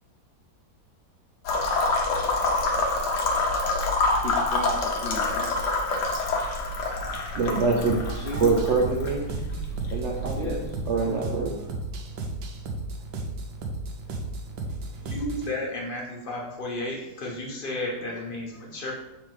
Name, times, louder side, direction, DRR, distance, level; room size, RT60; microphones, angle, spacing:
sound 1, 1.5-11.2, left 2 dB, 65° left, 1.4 m, -27 dB
voice 1, 4.2-5.7 8.1-8.4 10.4-10.7, left 3 dB, 90° left, -2 dB, 0.5 m, -35 dB
voice 2, 7.3-8.0 8.3-9.3 9.9-10.6 10.9-11.5, right 4 dB, 60° right, -2 dB, 0.7 m, -25 dB
sound 2, 7.9-15.5, right 2 dB, 85° right, 1.5 m, -34 dB
voice 3, 15.0-18.9, left 1 dB, 30° left, -3 dB, 1.2 m, -33 dB
5.7 x 3.7 x 4.7 m, 0.95 s
omnidirectional pair, 2.0 m